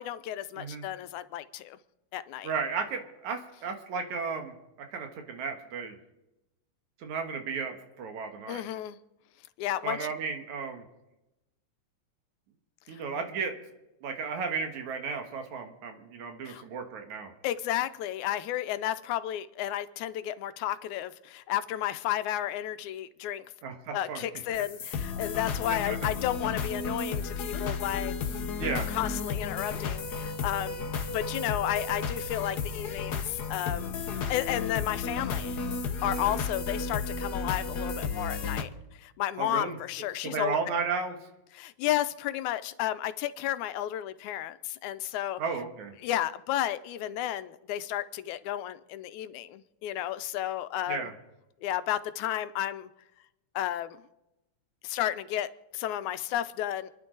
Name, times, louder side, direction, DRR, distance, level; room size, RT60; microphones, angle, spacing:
voice 1, 0.0-1.8 2.1-2.5 8.5-9.0 9.6-10.1 12.9-13.0 16.5-16.6 17.4-23.4 23.9-35.7 36.0-40.6 41.5-45.4 46.0-51.1 51.6-52.9 53.6-54.0 54.8-56.9, left 12 dB, 85° left, 2.1 m, -32 dB
voice 2, 2.4-4.5 4.9-6.0 7.0-8.6 9.8-10.8 12.9-13.6 14.0-17.3 23.6-24.3 25.7-26.0 28.5-28.9 36.0-36.3 39.4-39.8 40.2-41.2 45.4-45.9 50.9-51.1, right 5 dB, 80° right, 2.8 m, -34 dB
sound 1, 24.5-38.6, left 5 dB, 70° left, 0.9 m, -33 dB
28.0 x 10.5 x 3.9 m
omnidirectional pair, 3.3 m